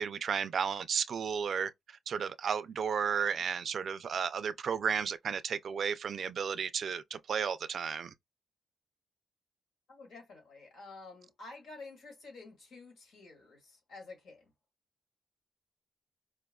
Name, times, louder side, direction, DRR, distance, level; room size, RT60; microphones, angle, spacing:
voice 1, 0.0-1.7 2.1-8.1, right 7 dB, 65° right, 0.3 m, -33 dB
voice 2, 3.1-3.4 9.9-14.5, left 3 dB, 90° left, 1.9 m, -50 dB
4.5 x 2.2 x 2.2 m
cardioid pair, 90°, 0 cm